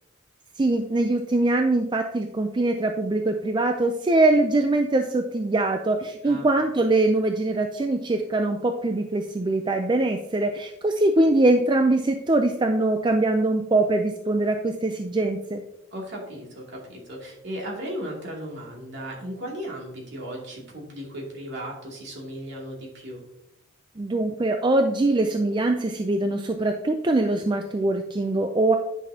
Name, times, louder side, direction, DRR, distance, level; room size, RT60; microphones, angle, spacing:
voice 1, 0.6-15.6 24.0-28.7, right 2 dB, 20° right, 5 dB, 0.4 m, -23 dB
voice 2, 6.2-6.6 15.9-23.2, equal, 55° right, -2 dB, 2.5 m, -36 dB
9.9 x 6.1 x 2.8 m, 0.83 s
head